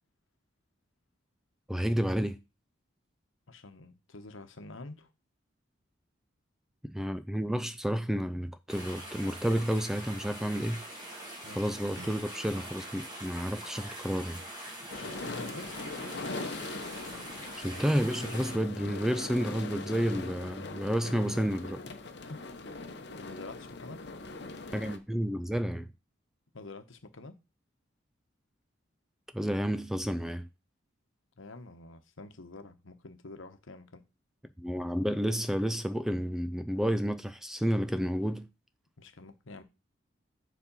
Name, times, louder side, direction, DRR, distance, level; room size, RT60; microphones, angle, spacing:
voice 1, 1.7-2.4 6.8-10.8 11.6-14.4 17.6-21.8 24.7-25.9 29.3-30.5 34.6-38.5, equal, ahead, 0.3 m, -30 dB
voice 2, 3.5-5.1 11.4-11.6 14.9-15.7 16.2-16.6 22.3-22.4 23.2-24.0 26.5-27.4 31.4-34.0 39.0-39.6, left 2 dB, 80° left, 1.0 m, -47 dB
sound 1, 8.7-18.6, right 1 dB, 20° right, 2.7 m, -44 dB
Guitar, 11.9-14.7, right 3 dB, 60° right, 1.5 m, -55 dB
sound 2, 14.9-25.0, left 3 dB, 55° left, 0.9 m, -41 dB
7.3 x 4.0 x 5.4 m
head